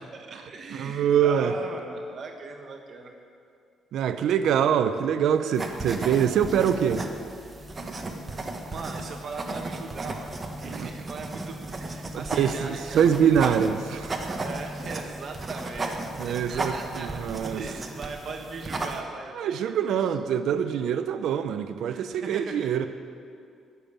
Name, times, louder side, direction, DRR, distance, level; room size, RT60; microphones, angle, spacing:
voice 1, 0.0-3.1 8.6-10.3 10.6-13.0 14.4-20.0 21.9-22.5, right 4 dB, 55° right, 3 dB, 1.5 m, -39 dB
voice 2, 0.7-1.5 3.9-7.0 10.6-10.9 12.1-14.2 16.2-17.6 19.4-22.9, right 8 dB, 75° right, 10 dB, 0.8 m, -24 dB
sound 1, 5.5-19.0, right 2 dB, 30° right, 1.5 m, -35 dB
21.0 x 7.1 x 7.3 m, 2.4 s
cardioid pair, 90°, 0 cm